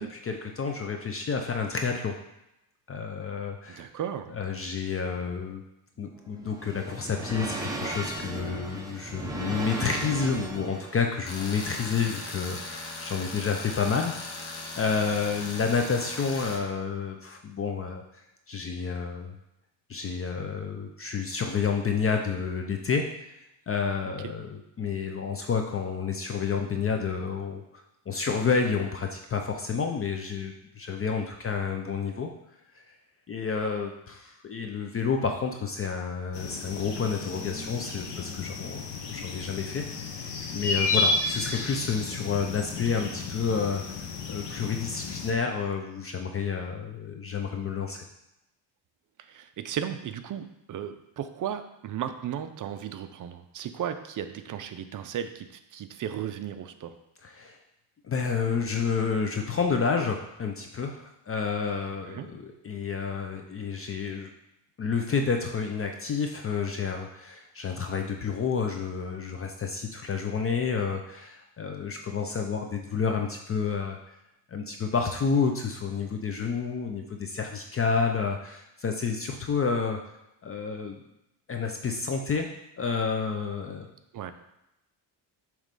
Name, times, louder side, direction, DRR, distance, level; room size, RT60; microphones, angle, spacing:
voice 1, 0.0-2.1 2.9-3.9 4.3-5.6 6.0-18.0 18.5-19.3 19.9-23.0 23.7-27.6 28.1-32.3 32.7-32.8 33.3-39.8 40.1-40.2 40.5-43.8 44.3-48.0 57.2-57.6 58.0-64.3 64.8-74.0 74.5-80.0 80.4-81.0 81.5-82.5 82.8-83.9, left 5 dB, 30° left, 4 dB, 0.5 m, -30 dB
voice 2, 3.7-4.4 24.0-24.3 49.2-57.0 62.0-62.3 84.1-84.3, right 9 dB, 45° right, 9 dB, 0.5 m, -35 dB
sound 1, 6.0-11.1, right 2 dB, 10° right, 0.8 m, -36 dB
Tools, 11.3-16.5, left 2 dB, 85° left, 1.7 m, -38 dB
sound 2, 36.3-45.3, left 3 dB, 60° left, 1.1 m, -32 dB
7.3 x 3.2 x 5.2 m, 0.88 s
cardioid pair, 135°, 47 cm